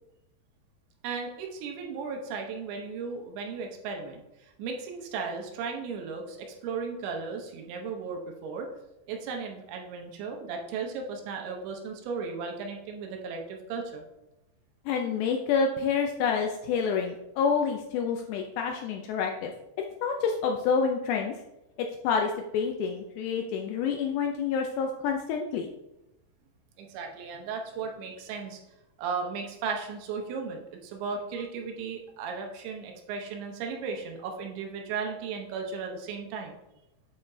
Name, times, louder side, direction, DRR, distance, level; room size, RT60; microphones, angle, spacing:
voice 1, 1.0-8.7 9.1-14.0 26.8-28.6 29.0-36.6, right 5 dB, 80° right, 2 dB, 3.1 m, -36 dB
voice 2, 14.9-19.5 20.0-21.3 22.0-25.7, left 6 dB, 85° left, 3 dB, 2.5 m, -28 dB
8.5 x 5.8 x 2.7 m, 0.91 s
omnidirectional pair, 5.4 m